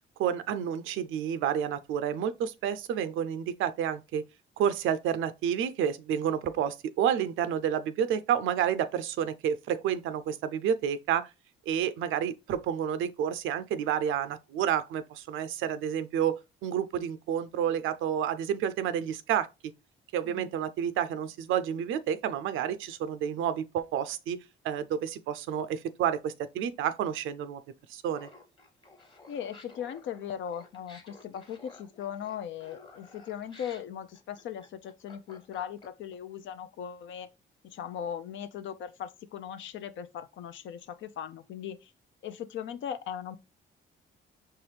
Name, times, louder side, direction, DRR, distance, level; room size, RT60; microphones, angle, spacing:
voice 1, 0.2-4.2 4.6-11.3 11.7-19.5 20.1-24.4 24.6-27.6 27.9-28.3, right 9 dB, 85° right, 0.5 m, -30 dB
Laughter, 28.1-36.1, left 3 dB, 25° left, 1.2 m, -53 dB
voice 2, 29.3-37.3 37.6-41.9 42.2-43.4, left 9 dB, 70° left, 0.5 m, -39 dB
4.7 x 3.0 x 3.2 m
cardioid pair, 90°, 20 cm